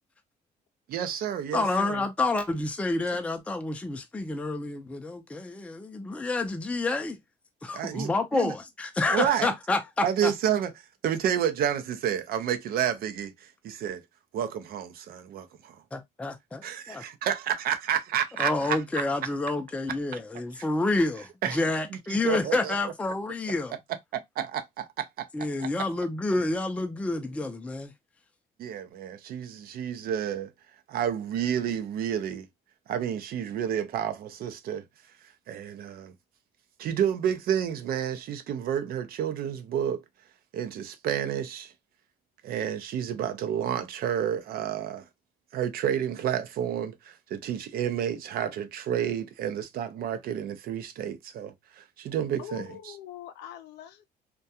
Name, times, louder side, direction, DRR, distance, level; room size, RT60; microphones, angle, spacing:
voice 1, 0.9-2.0 7.7-8.5 9.1-9.5 10.0-10.7 11.0-14.0 14.3-15.8 16.6-18.8 21.4-21.6 22.1-22.7 24.1-25.3 25.6-25.7 28.6-30.5 30.9-32.5 32.9-34.8 35.5-36.1 36.8-40.0 40.5-41.7 42.4-45.0 45.5-52.7, right 9 dB, 60° right, 0.5 m, -30 dB
voice 2, 1.5-7.2 7.6-10.3 15.9-17.0 18.4-23.7 25.3-27.9, left 2 dB, 5° left, 0.4 m, -29 dB
voice 3, 52.4-54.0, left 11 dB, 85° left, 0.5 m, -43 dB
2.3 x 2.2 x 2.7 m
cardioid pair, 110°, 17 cm